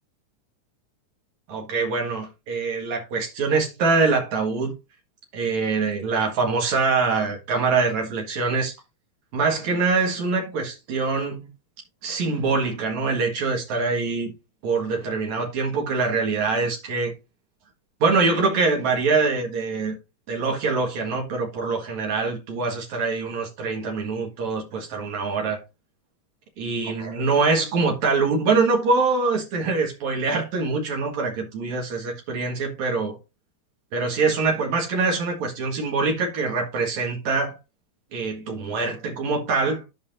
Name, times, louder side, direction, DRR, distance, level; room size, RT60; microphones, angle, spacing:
voice 1, 1.5-4.7 5.3-8.7 9.3-11.5 12.0-14.3 14.6-17.1 18.0-19.9 20.3-25.6 26.6-33.2 33.9-37.6 38.1-39.8, right 4 dB, 70° right, 3.0 m, -24 dB
12.5 x 5.6 x 2.7 m
omnidirectional pair, 3.4 m